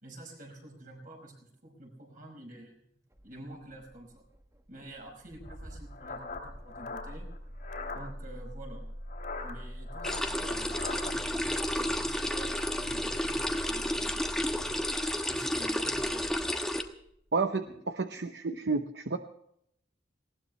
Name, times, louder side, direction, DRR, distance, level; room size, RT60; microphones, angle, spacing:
voice 1, 0.0-2.8 3.2-4.2 4.7-7.3 7.9-8.8 9.4-14.8 15.3-16.4 17.6-17.7 18.5-18.6, right 1 dB, 50° right, 1 dB, 5.4 m, -48 dB
Engine starting, 3.1-17.2, equal, 15° right, 1.1 m, -44 dB
sound 1, 5.4-8.0 9.1-11.1, left 4 dB, 55° left, 2.8 m, -41 dB
sound 2, 10.0-16.8, left 1 dB, 5° left, 1.2 m, -31 dB
voice 2, 17.3-17.6 18.0-19.2, right 4 dB, 70° right, 7 dB, 0.8 m, -30 dB
19.5 x 18.0 x 3.2 m, 0.72 s
head